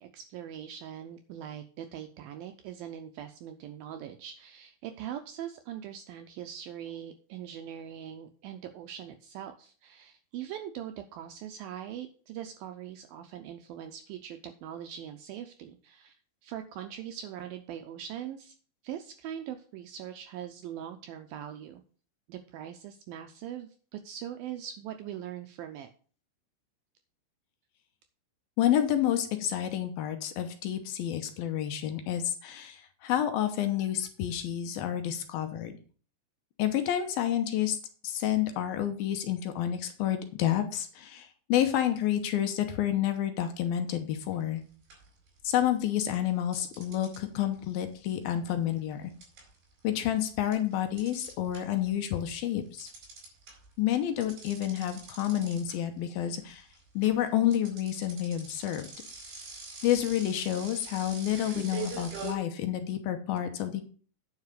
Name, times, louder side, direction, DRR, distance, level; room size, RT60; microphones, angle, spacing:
voice 1, 0.0-16.2 16.4-18.5 18.8-21.8 22.3-25.9, right 10 dB, 90° right, 7 dB, 2.1 m, -41 dB
voice 2, 28.6-35.7 36.6-37.8 38.0-44.6 45.4-49.1 49.8-52.9 53.8-56.7 57.0-58.9 59.8-63.8, left 11 dB, 70° left, 7 dB, 2.5 m, -29 dB
sound 1, 44.3-44.6 44.9-45.8 46.5-51.9 52.2-62.3, right 4 dB, 70° right, 6.5 m, -43 dB
9.6 x 5.6 x 6.6 m, 0.42 s
omnidirectional pair, 4.8 m